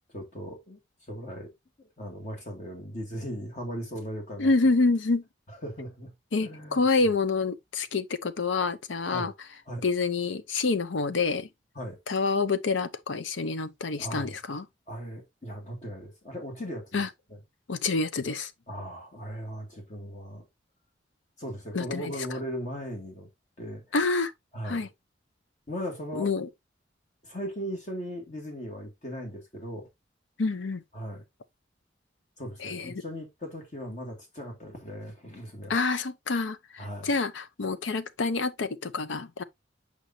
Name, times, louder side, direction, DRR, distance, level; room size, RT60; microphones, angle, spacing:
voice 1, 0.1-0.8 1.1-1.5 1.8-4.5 5.5-6.1 6.4-7.1 9.1-9.3 9.7-9.8 11.7-12.0 14.0-14.4 14.9-17.0 17.3-17.4 18.7-20.4 21.4-23.3 23.6-23.8 24.5-24.9 25.7-26.3 27.2-29.9 30.9-31.2 32.4-35.8 36.8-37.1, equal, 40° left, 2.2 m, -38 dB
voice 2, 4.4-5.2 6.3-9.3 9.8-11.5 12.1-14.7 16.9-17.1 17.7-18.5 21.7-22.1 23.9-24.3 24.7-24.9 26.1-26.5 30.4-30.8 32.6-33.0 35.7-39.4, left 3 dB, 80° left, 0.7 m, -27 dB
6.6 x 5.2 x 2.8 m
head